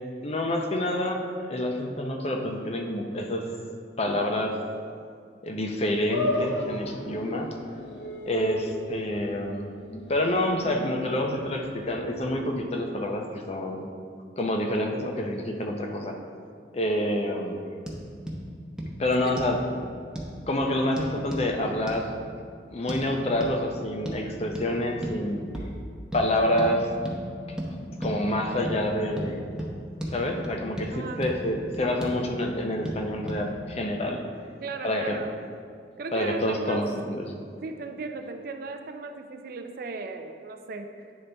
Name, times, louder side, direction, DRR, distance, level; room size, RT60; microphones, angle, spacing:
voice 1, 0.2-3.5 4.0-4.6 5.4-7.5 8.3-9.7 10.1-13.9 14.4-16.2 16.7-17.6 19.0-19.6 20.5-22.2 22.7-25.4 26.1-26.9 27.5-29.5 30.1-34.2 34.8-35.2 36.1-37.2, left 1 dB, 35° left, 3 dB, 0.6 m, -28 dB
sound 1, 6.1-12.5, left 1 dB, 90° left, 0.8 m, -35 dB
voice 2, 16.9-17.3 19.2-19.4 30.9-31.2 34.6-35.4 36.0-36.9 37.6-40.9, right 3 dB, 55° right, 6 dB, 0.4 m, -36 dB
sound 2, 17.9-18.0 18.3-18.4 18.8-18.9 19.4-19.6 20.2-20.3 21.0-21.5 21.9-22.0 22.9-23.0 23.4-23.6 24.1-24.2 24.6-24.7 25.0-25.2 25.5-25.7 26.1-26.3 26.6-26.7 27.1-27.2 27.6-27.7 28.0-28.2 28.6-28.8 29.2-29.3 29.6-29.7 30.0-30.1 30.4-30.9 31.2-31.3 31.7-32.2 32.9-33.0 33.3-33.4, equal, 5° right, 0.7 m, -34 dB
9.7 x 4.0 x 3.4 m, 2.2 s
head